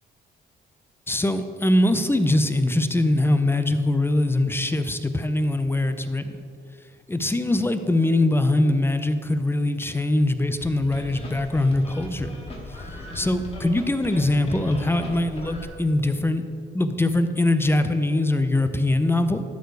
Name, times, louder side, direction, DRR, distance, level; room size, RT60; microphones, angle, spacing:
voice 1, 1.1-6.4 7.1-12.4 13.1-16.4 16.7-19.4, left 1 dB, 10° left, 9 dB, 0.5 m, -22 dB
sound 1, 10.6-15.7, left 1 dB, 30° left, 1.8 m, -38 dB
12.5 x 4.6 x 4.7 m, 2.5 s
cardioid pair, 90°, 20 cm